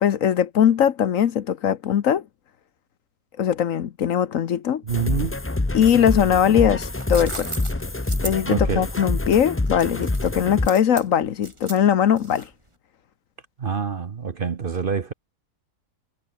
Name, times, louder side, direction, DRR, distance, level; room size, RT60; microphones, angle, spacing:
voice 1, 0.0-2.2 3.4-4.8 5.7-7.5 8.2-12.5, left 9 dB, 65° left, 1.2 m, -20 dB
sound 1, 4.9-10.7, left 2 dB, 15° left, 0.5 m, -26 dB
voice 2, 4.9-5.3 8.5-8.9 13.6-15.1, right 6 dB, 40° right, 0.9 m, -26 dB
sound 2, 6.9-12.7, right 2 dB, 20° right, 2.5 m, -37 dB
omnidirectional pair, 1.6 m